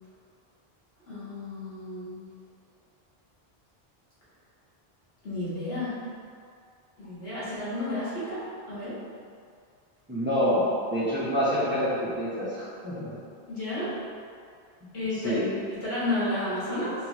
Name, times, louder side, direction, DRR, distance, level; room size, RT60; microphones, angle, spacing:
voice 1, 1.1-2.2 5.2-5.9 7.0-8.4 8.7-9.0 13.5-13.9 14.9-15.4 15.8-16.9, left 1 dB, 75° left, -11 dB, 1.8 m, -31 dB
voice 2, 10.1-10.6 10.9-13.2 15.2-15.5, equal, 10° right, -10 dB, 1.0 m, -27 dB
5.0 x 3.4 x 3.0 m, 2.3 s
omnidirectional pair, 1.0 m